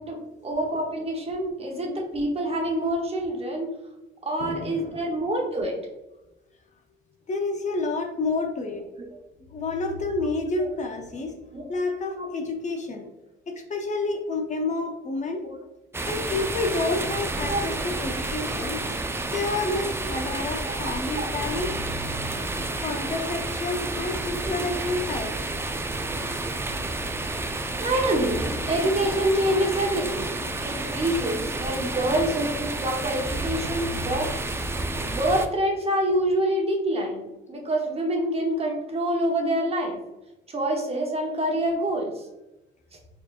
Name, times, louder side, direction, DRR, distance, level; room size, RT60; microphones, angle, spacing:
voice 1, 0.0-3.7 4.2-5.8 10.6-10.7 11.5-11.6 12.1-12.3 17.5-17.6 20.6-21.3 24.5-24.6 27.8-34.4 35.0-37.2 37.5-40.0 40.5-42.1, right 1 dB, 30° right, 1 dB, 0.9 m, -26 dB
voice 2, 4.4-5.2 7.3-8.8 9.5-11.3 11.7-13.1 13.5-15.4 16.1-18.8 19.3-21.7 22.8-25.3 32.1-32.3, left 3 dB, 35° left, 3 dB, 0.6 m, -29 dB
sound 1, 15.9-35.5, right 2 dB, 10° right, 0.3 m, -30 dB
4.3 x 2.8 x 2.4 m, 0.97 s
cardioid pair, 85°, 21 cm